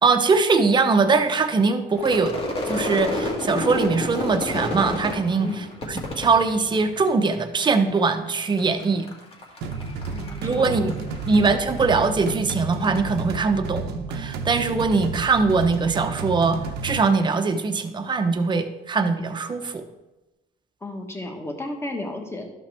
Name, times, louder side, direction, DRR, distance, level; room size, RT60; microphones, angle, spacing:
voice 1, 0.0-2.4 2.7-9.1 10.4-10.9 11.3-19.8, right 4 dB, 25° right, 7 dB, 0.8 m, -22 dB
Crowd / Fireworks, 2.0-7.3 7.6-8.3 8.6-12.1, left 1 dB, 35° left, 1.7 m, -30 dB
sound 1, 9.6-17.0, right 4 dB, 80° right, 0.8 m, -32 dB
voice 2, 10.0-10.9 20.8-22.5, left 2 dB, 15° left, 3 dB, 1.3 m, -33 dB
12.5 x 5.7 x 3.4 m, 1.0 s
cardioid pair, 110°, 17 cm